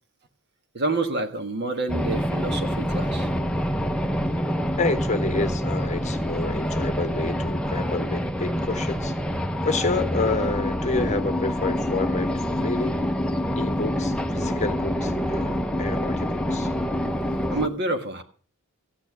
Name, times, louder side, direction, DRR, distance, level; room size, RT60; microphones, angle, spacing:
voice 1, 0.7-3.3 17.5-18.2, right 2 dB, 50° right, 6 dB, 1.6 m, -28 dB
sound 1, 1.9-17.7, equal, 5° left, 0.7 m, -26 dB
voice 2, 4.8-9.1 9.6-13.0 13.5-16.7, left 3 dB, 30° left, 9 dB, 1.1 m, -29 dB
14.0 x 9.0 x 6.0 m, 0.42 s
head